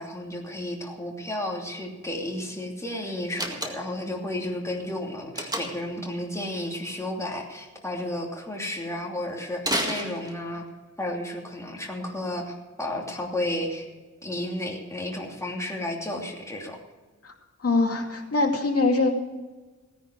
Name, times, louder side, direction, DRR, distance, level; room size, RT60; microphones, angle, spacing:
voice 1, 0.0-10.7 11.0-13.9 14.2-16.8, left 1 dB, 10° left, -1 dB, 2.8 m, -32 dB
Slam, 3.3-4.1 5.4-5.9 9.6-10.7, right 1 dB, 15° right, 2.0 m, -30 dB
voice 2, 17.6-19.1, left 3 dB, 50° left, 1 dB, 2.5 m, -23 dB
17.0 x 10.0 x 4.7 m, 1.3 s
wide cardioid pair, 120°, 29 cm